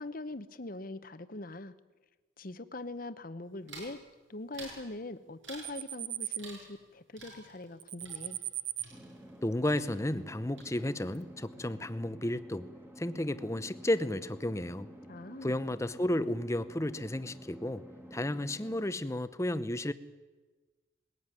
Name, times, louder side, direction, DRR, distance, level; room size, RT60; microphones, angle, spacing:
voice 1, 0.0-1.7 2.4-4.0 4.3-8.4 15.1-15.5, left 2 dB, 45° left, 12 dB, 0.9 m, -42 dB
sound 1, 3.7-4.0 4.5-4.9 5.4-5.8 6.4-6.9 7.2-9.5 9.7-10.3 10.6-11.1, right 3 dB, 75° right, 6.7 m, -50 dB
sound 2, 5.6-6.4 7.8-8.8, right 12 dB, 35° right, 0.6 m, -37 dB
sound 3, 8.9-18.9, equal, 10° right, 1.9 m, -51 dB
voice 2, 9.4-12.7 13.0-14.9 15.4-17.8 18.1-19.9, left 1 dB, 15° left, 13 dB, 0.7 m, -32 dB
20.0 x 16.5 x 9.7 m, 1.3 s
head